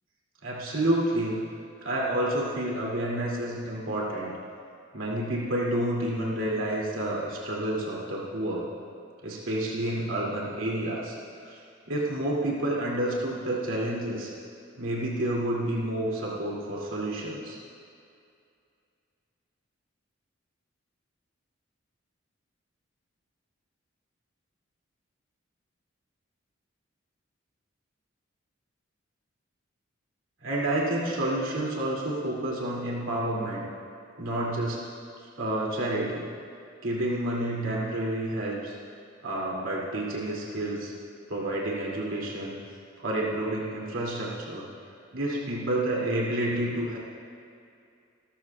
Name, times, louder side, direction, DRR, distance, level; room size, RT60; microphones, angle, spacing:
voice 1, 0.4-1.4 1.8-4.3 4.9-8.7 9.2-11.1 11.4-11.6 11.9-14.3 14.8-17.6 30.4-33.7 34.2-34.8 35.4-36.2 36.8-38.7 39.2-40.9 41.3-42.5 43.0-44.7 45.1-47.0, right 1 dB, 90° right, -5 dB, 2.6 m, -29 dB
28.5 x 13.5 x 2.4 m, 2.5 s
head